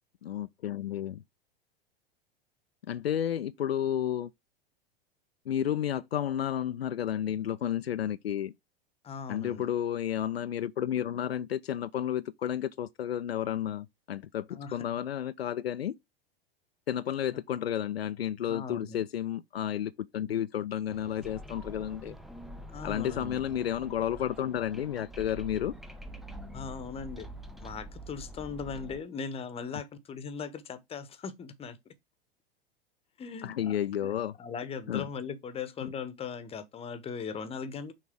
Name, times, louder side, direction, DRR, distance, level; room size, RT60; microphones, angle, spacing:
voice 1, 0.2-1.2 2.9-4.3 5.5-8.5 9.3-15.9 16.9-22.2 22.8-25.7 33.4-34.4 34.9-35.1 35.8-35.9, left 10 dB, 80° left, 0.5 m, -32 dB
voice 2, 9.0-9.7 14.5-14.8 17.3-17.4 18.5-19.0 22.7-23.4 26.5-27.3 27.6-31.9 33.2-33.7 34.0-34.1 34.4-37.9, left 5 dB, 20° left, 1.0 m, -39 dB
sound 1, 20.9-29.0, equal, ahead, 0.7 m, -45 dB
6.4 x 4.1 x 3.6 m
figure-of-eight pair, 90°, 30 cm